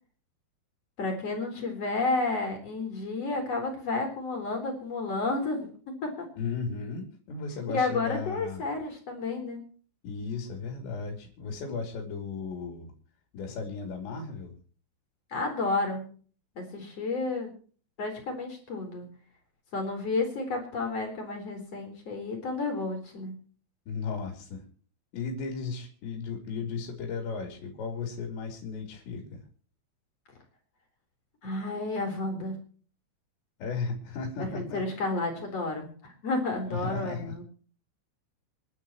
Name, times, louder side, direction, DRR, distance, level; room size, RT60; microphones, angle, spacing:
voice 1, 1.0-5.7 6.0-6.3 7.7-9.6 15.3-16.1 16.5-17.5 18.0-19.1 19.7-23.3 31.4-32.6 34.4-37.4, left 3 dB, 35° left, 3 dB, 4.7 m, -31 dB
voice 2, 6.4-8.7 10.0-12.9 13.3-14.6 23.9-24.6 25.1-29.4 33.6-34.8 36.6-37.4, left 5 dB, 70° left, 1 dB, 5.1 m, -35 dB
27.5 x 12.0 x 3.1 m, 0.42 s
omnidirectional pair, 5.5 m